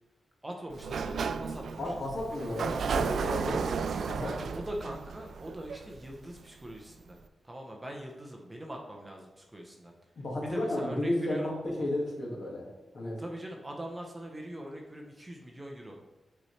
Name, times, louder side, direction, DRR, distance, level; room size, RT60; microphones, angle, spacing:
voice 1, 0.4-1.9 4.2-7.2 7.4-9.9 10.4-11.5 13.2-16.1, right 1 dB, 15° right, 1 dB, 0.7 m, -42 dB
Sliding door, 0.7-6.4, right 5 dB, 70° right, 0.3 m, -33 dB
voice 2, 1.8-4.5 10.2-12.7 12.9-13.2, left 1 dB, 55° left, -3 dB, 1.9 m, -33 dB
8.0 x 4.2 x 3.2 m, 1.1 s
wide cardioid pair, 155°, 0 cm